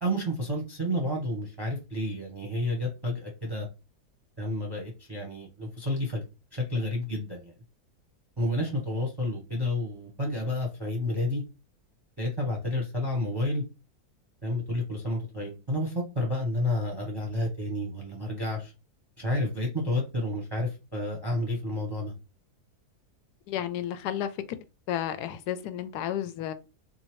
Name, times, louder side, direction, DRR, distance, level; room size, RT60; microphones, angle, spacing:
voice 1, 0.0-3.7 4.4-6.2 6.5-7.5 8.4-11.4 12.2-13.6 14.4-18.7 19.2-22.1, left 1 dB, 20° right, 0.8 m, -30 dB
voice 2, 23.5-24.4 24.9-26.5, left 10 dB, 85° left, 1.1 m, -32 dB
3.7 x 2.7 x 3.0 m
omnidirectional pair, 1.7 m